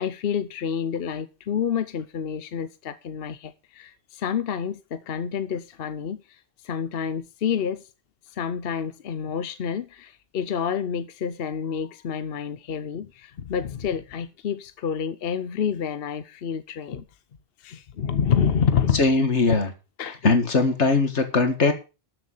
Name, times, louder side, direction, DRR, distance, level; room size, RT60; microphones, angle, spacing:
voice 1, 0.0-7.8 8.3-17.1 17.6-19.0 20.0-20.2, left 7 dB, 60° left, 0.9 m, -28 dB
voice 2, 18.9-19.7 20.0-21.7, left 3 dB, 85° left, 2.2 m, -20 dB
13.0 x 7.5 x 5.5 m
omnidirectional pair, 1.1 m